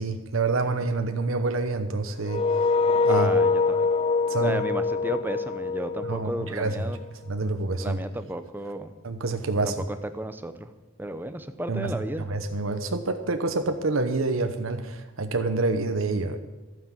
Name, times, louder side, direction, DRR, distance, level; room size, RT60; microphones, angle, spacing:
voice 1, 0.0-2.4 3.0-3.3 4.3-4.6 6.1-6.8 7.3-8.0 9.0-9.7 11.7-11.9 12.3-16.4, right 3 dB, 80° right, 7 dB, 1.0 m, -27 dB
sound 1, 2.2-7.1, left 4 dB, 30° left, 0.3 m, -24 dB
voice 2, 3.1-3.9 4.3-7.0 7.8-8.9 9.6-10.7 11.0-12.3, right 1 dB, 10° right, 9 dB, 0.8 m, -33 dB
12.5 x 9.3 x 7.6 m, 1.2 s
head